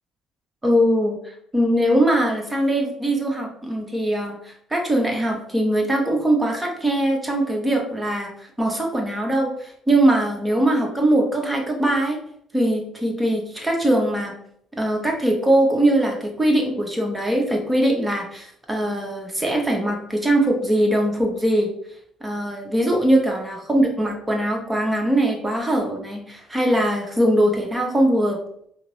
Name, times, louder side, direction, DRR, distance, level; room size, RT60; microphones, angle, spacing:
voice 1, 0.6-8.3 8.6-12.2 12.5-14.3 14.8-21.7 22.2-28.4, right 1 dB, 15° right, 1 dB, 1.0 m, -21 dB
4.8 x 2.0 x 3.0 m, 0.68 s
figure-of-eight pair, 50°, 0 cm